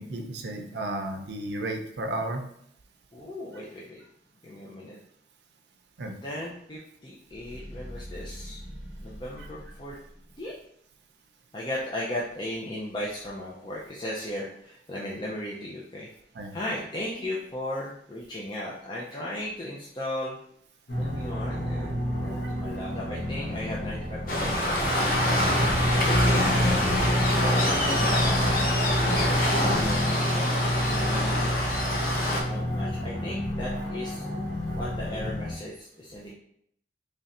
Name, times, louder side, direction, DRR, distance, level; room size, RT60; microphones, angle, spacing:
voice 1, 0.0-2.4 6.0-6.1 9.4-9.5 16.3-16.5, right 1 dB, 75° right, 5 dB, 0.5 m, -33 dB
voice 2, 3.1-4.0 4.4-5.0 6.2-8.6 9.0-9.9 10.4-10.5 11.5-16.1 16.5-20.4 21.0-30.1 30.4-30.6 31.0-31.6 32.3-34.2 34.7-36.3, left 1 dB, 25° left, -5 dB, 0.5 m, -36 dB
sound 1, 7.2-10.5, equal, 10° right, 1.2 m, -43 dB
sound 2, 20.9-35.5, left 1 dB, 90° left, 1.2 m, -28 dB
Waves surf, 24.3-32.4, left 1 dB, 50° left, 0.7 m, -26 dB
3.3 x 2.5 x 4.1 m, 0.69 s
head